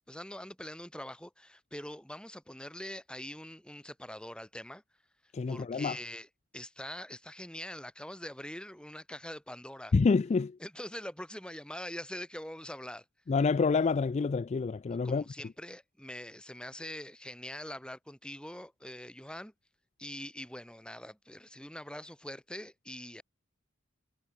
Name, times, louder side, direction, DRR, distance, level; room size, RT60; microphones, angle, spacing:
voice 1, 0.1-4.8 5.5-6.3 6.5-9.9 10.6-13.0 14.9-19.5 20.0-23.2, left 1 dB, 5° left, 3.7 m, -43 dB
voice 2, 5.3-6.0 9.9-10.6 13.3-15.2, left 4 dB, 35° left, 0.3 m, -27 dB
head